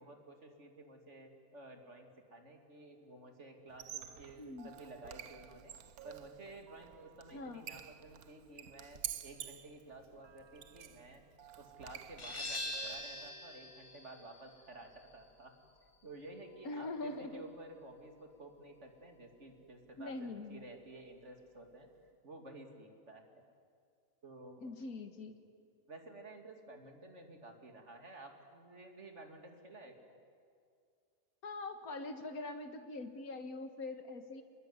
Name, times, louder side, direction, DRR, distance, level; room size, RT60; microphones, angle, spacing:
voice 1, 0.0-5.7 6.0-11.2 11.6-15.5 16.0-21.9 22.2-23.4 24.2-24.7 25.9-30.1, right 2 dB, 55° right, 4 dB, 3.0 m, -53 dB
Squeak, 3.7-13.3, right 10 dB, 85° right, 1.4 m, -49 dB
voice 2, 4.4-4.7 7.3-7.7 16.6-17.5 20.0-20.7 24.6-25.3 31.4-34.4, left 2 dB, 90° left, 8 dB, 2.0 m, -43 dB
sound 1, 12.2-17.6, left 1 dB, 65° left, 2.9 m, -45 dB
26.5 x 21.0 x 9.7 m, 2.2 s
omnidirectional pair, 1.5 m